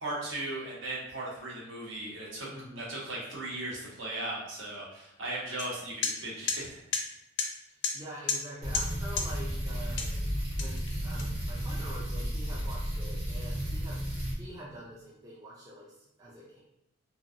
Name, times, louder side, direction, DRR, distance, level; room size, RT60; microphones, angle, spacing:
voice 1, 0.0-2.5 2.8-6.8, right 2 dB, 60° right, -4 dB, 0.8 m, -37 dB
voice 2, 2.5-2.9 7.6-10.3 10.6-14.0 14.3-16.6, right 1 dB, 15° right, -5 dB, 0.3 m, -46 dB
sound 1, 5.6-5.7 6.0-6.1 6.5-6.6 6.9-7.0 7.4-7.5 7.8-7.9 8.3-8.4 8.7-8.9 9.2-9.3 10.0-10.2 10.6-11.6, left 5 dB, 55° left, 0.4 m, -31 dB
sound 2, 8.6-14.3, equal, 85° right, 1.3 m, -33 dB
2.9 x 2.6 x 2.5 m, 0.85 s
head